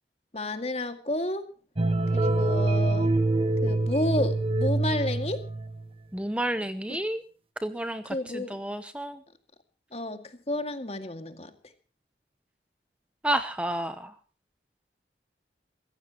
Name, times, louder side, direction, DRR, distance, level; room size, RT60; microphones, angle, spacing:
voice 1, 0.3-1.5 2.1-3.1 3.6-5.4 8.1-8.6 9.9-11.5, left 1 dB, 35° left, 8 dB, 2.1 m, -31 dB
sound 1, 1.8-5.9, right 2 dB, 30° right, 1.2 m, -25 dB
voice 2, 6.1-7.2 7.6-9.2 13.2-14.1, right 1 dB, 5° right, 10 dB, 0.8 m, -30 dB
24.0 x 15.5 x 3.0 m, 0.37 s
head